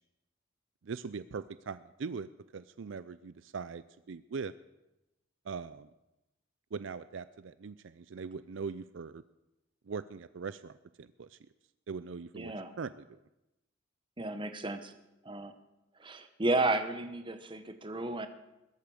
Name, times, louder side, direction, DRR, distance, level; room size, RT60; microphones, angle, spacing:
voice 1, 0.8-4.5 5.4-5.9 6.7-9.2 9.9-11.4 11.9-13.2, right 5 dB, 65° right, 14 dB, 0.5 m, -41 dB
voice 2, 12.3-12.7 14.2-14.9 15.2-15.5 16.0-18.3, right 2 dB, 25° right, 9 dB, 1.0 m, -33 dB
21.0 x 8.5 x 6.4 m, 0.95 s
head